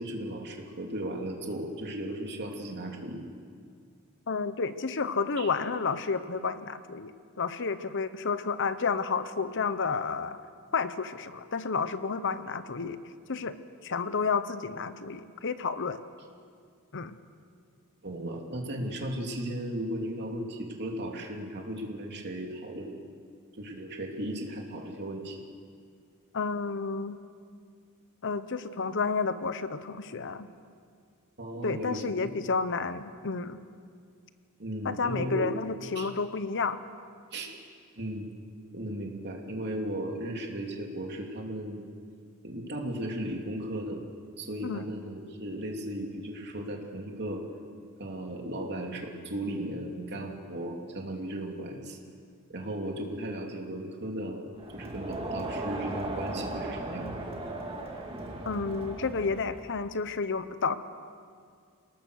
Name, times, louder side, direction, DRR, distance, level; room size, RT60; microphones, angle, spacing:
voice 1, 0.0-3.2 5.4-5.5 18.0-23.0 23.6-25.4 31.4-32.3 34.6-35.5 35.9-36.1 37.3-37.5 38.0-38.3 38.7-41.9 42.4-44.0 44.4-47.4 48.0-52.0 52.5-54.4 54.7-57.1, right 1 dB, 50° right, 1 dB, 3.1 m, -36 dB
voice 2, 4.3-10.4 10.7-13.0 13.3-13.5 13.8-16.0 16.9-17.2 26.3-27.2 28.2-30.5 31.6-33.6 34.8-36.8 44.6-44.8 58.4-60.8, left 5 dB, 60° left, 12 dB, 0.9 m, -31 dB
Crowd, 54.6-59.8, right 2 dB, 25° right, 2.4 m, -37 dB
28.5 x 19.0 x 6.5 m, 2.1 s
head